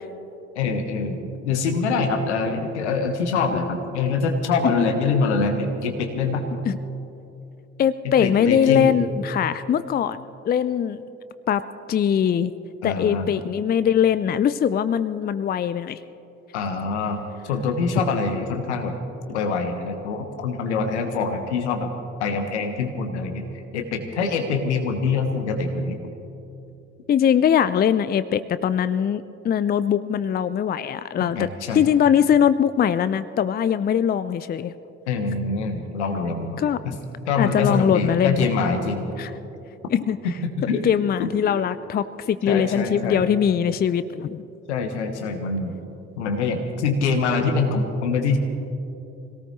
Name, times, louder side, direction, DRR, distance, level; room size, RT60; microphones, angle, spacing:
voice 1, 0.5-6.4 8.0-8.9 12.8-13.3 16.5-19.0 19.3-21.9 22.2-23.5 23.7-26.0 31.2-31.8 35.1-36.9 37.3-39.1 40.4-40.9 41.2-41.3 42.5-43.2 44.7-45.7 46.2-48.4, left 4 dB, 80° left, 5 dB, 1.3 m, -24 dB
voice 2, 7.8-11.0 11.5-11.6 11.9-12.5 12.8-16.0 27.1-31.5 31.7-34.7 36.6-36.8 37.4-38.5 39.2-39.3 39.9-40.2 40.6-44.4, left 8 dB, 30° left, 15 dB, 0.5 m, -21 dB
24.5 x 18.0 x 3.2 m, 2.8 s
figure-of-eight pair, 45°, 34 cm